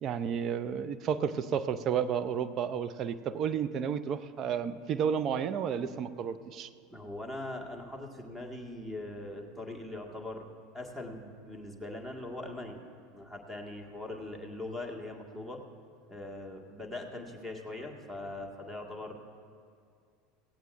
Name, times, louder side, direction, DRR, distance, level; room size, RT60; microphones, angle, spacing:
voice 1, 0.0-6.7, right 7 dB, 40° right, 14 dB, 0.6 m, -32 dB
voice 2, 6.9-10.4 10.7-12.8 13.1-15.6 16.1-19.1, left 2 dB, 10° right, 2 dB, 1.9 m, -41 dB
17.0 x 17.0 x 2.6 m, 2.3 s
figure-of-eight pair, 75°, 0 cm